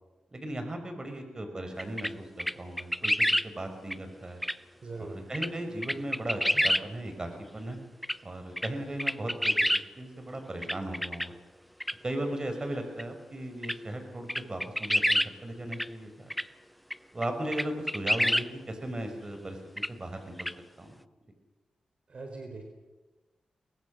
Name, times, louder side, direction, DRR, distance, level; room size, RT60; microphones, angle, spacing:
voice 1, 0.3-4.4 5.0-7.8 8.2-9.7 10.0-11.3 12.0-16.3 17.1-20.5 20.8-20.9, right 1 dB, 30° right, 6 dB, 5.2 m, -37 dB
sound 1, 1.8-2.1 2.4-3.5 3.9-4.0 4.4-4.5 5.3-5.5 5.8-6.8 8.0-8.2 8.6-8.7 9.0-9.8 10.6-11.3 11.8-11.9 13.0-13.1 13.6-13.8 14.3-15.3 15.7-15.9 16.3-16.4 16.9-17.0 17.2-17.3 17.5-18.5 19.8-19.9 20.4-20.5, equal, ahead, 0.7 m, -27 dB
voice 2, 4.8-5.2 22.1-22.6, right 3 dB, 55° right, 4 dB, 4.0 m, -41 dB
24.0 x 20.0 x 6.5 m, 1.2 s
cardioid pair, 55°, 2 cm